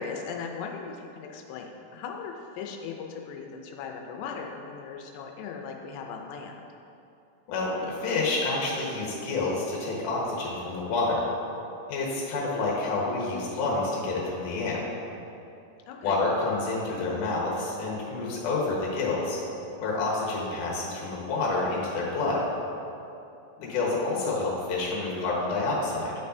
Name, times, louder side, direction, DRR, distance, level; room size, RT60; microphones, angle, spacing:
voice 1, 0.0-6.6 15.9-16.2 23.6-23.8, left 5 dB, 85° left, 2 dB, 2.7 m, -38 dB
voice 2, 7.5-11.3 11.9-14.8 16.0-19.4 19.8-22.5 23.6-26.1, left 3 dB, 65° left, -4 dB, 2.3 m, -28 dB
10.0 x 5.4 x 2.6 m, 2.7 s
omnidirectional pair, 4.8 m